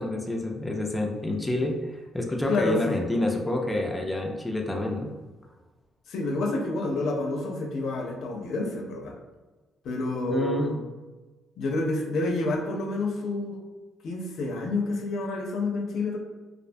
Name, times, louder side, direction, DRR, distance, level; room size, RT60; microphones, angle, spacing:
voice 1, 0.0-5.1 10.3-10.8, left 1 dB, 10° left, 1 dB, 0.3 m, -28 dB
voice 2, 2.5-3.0 6.1-9.1 9.8-10.8 11.6-13.6 14.0-16.2, left 2 dB, 75° left, 1 dB, 0.4 m, -29 dB
2.4 x 2.1 x 2.5 m, 1.2 s
cardioid pair, 90°, 0 cm